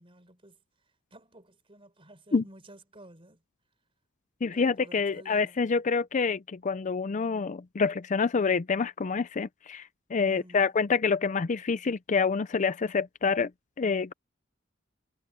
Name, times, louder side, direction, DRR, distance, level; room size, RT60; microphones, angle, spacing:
voice 1, 0.0-3.4 4.5-5.8 10.2-10.7, right 1 dB, 25° right, 4.0 m, -53 dB
voice 2, 4.4-13.5 13.8-14.1, left 5 dB, 35° left, 0.4 m, -27 dB
head